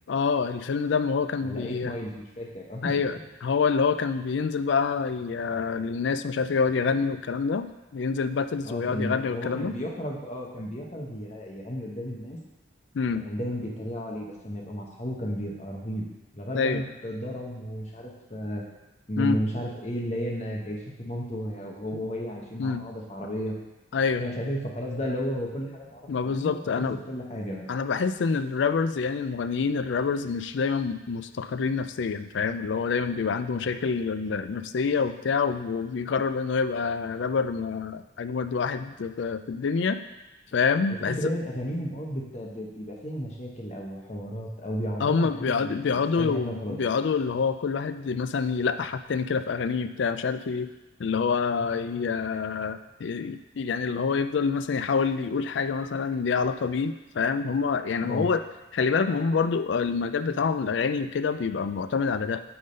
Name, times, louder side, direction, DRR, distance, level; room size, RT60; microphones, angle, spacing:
voice 1, 0.1-1.9 2.8-9.7 12.9-13.3 16.5-16.8 19.2-19.4 21.9-22.0 22.6-22.8 23.9-24.2 26.1-27.0 27.7-40.0 40.5-41.2 45.0-50.7 51.0-58.4 58.7-62.4, left 5 dB, 70° left, 11 dB, 0.4 m, -27 dB
voice 2, 1.4-2.9 8.6-12.4 13.2-16.0 16.3-18.6 19.1-23.6 24.2-27.7 41.1-46.8 58.0-58.3, equal, 35° left, -1 dB, 1.2 m, -33 dB
8.6 x 3.9 x 5.3 m, 1.0 s
head